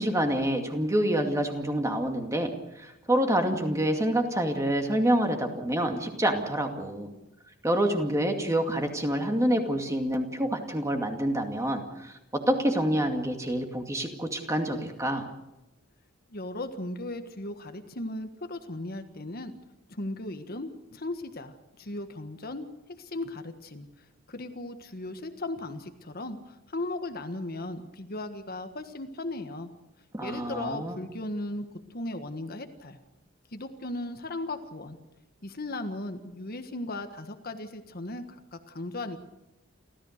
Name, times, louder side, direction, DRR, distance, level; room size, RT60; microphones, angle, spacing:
voice 1, 0.0-2.5 2.8-7.1 7.6-12.1 12.5-15.3 30.1-31.0, right 1 dB, 15° right, 4 dB, 2.3 m, -27 dB
voice 2, 16.3-19.5 19.9-22.7 23.0-23.9 24.3-29.7 30.2-33.0 33.5-35.0 35.4-39.2, left 2 dB, 45° left, 7 dB, 1.5 m, -37 dB
29.0 x 14.0 x 6.6 m, 0.93 s
head